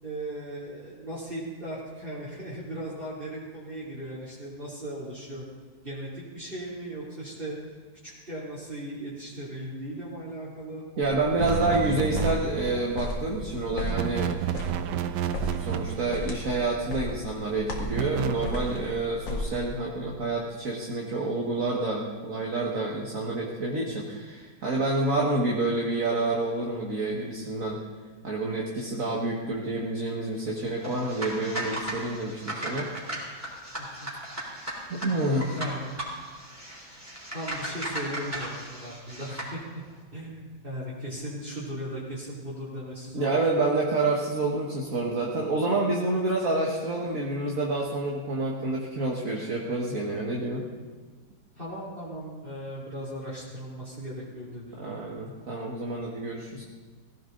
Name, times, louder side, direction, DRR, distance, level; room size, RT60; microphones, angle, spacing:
voice 1, 0.0-5.4 5.8-7.6 8.0-11.8 33.8-34.1 35.5-35.9 37.3-39.8 40.1-43.3 51.5-55.0, right 1 dB, 30° right, -8 dB, 3.3 m, -37 dB
sound 1, 11.0-19.7, left 1 dB, 90° left, 2.7 m, -36 dB
voice 2, 11.0-14.4 15.6-27.8 28.2-32.9 34.9-35.6 43.1-50.6 54.8-56.6, right 2 dB, 50° right, -3 dB, 2.0 m, -28 dB
sound 2, 11.4-12.9 13.8-16.4 17.8-19.0, right 9 dB, 75° right, 1.3 m, -31 dB
sound 3, 30.8-39.5, right 1 dB, 10° right, 3.9 m, -37 dB
18.5 x 16.5 x 4.0 m, 1.4 s
omnidirectional pair, 1.9 m